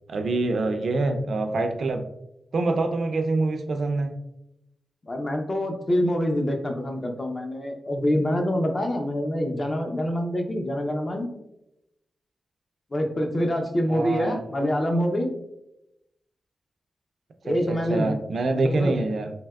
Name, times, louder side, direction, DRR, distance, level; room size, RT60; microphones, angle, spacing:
voice 1, 0.1-2.1 2.5-4.2 13.9-14.4 17.5-19.3, right 2 dB, 65° right, 6 dB, 0.3 m, -26 dB
voice 2, 5.0-11.3 12.9-15.3 17.4-18.1 18.5-19.0, equal, 30° left, 3 dB, 0.5 m, -26 dB
3.3 x 2.8 x 2.2 m, 0.85 s
cardioid pair, 85°, 0 cm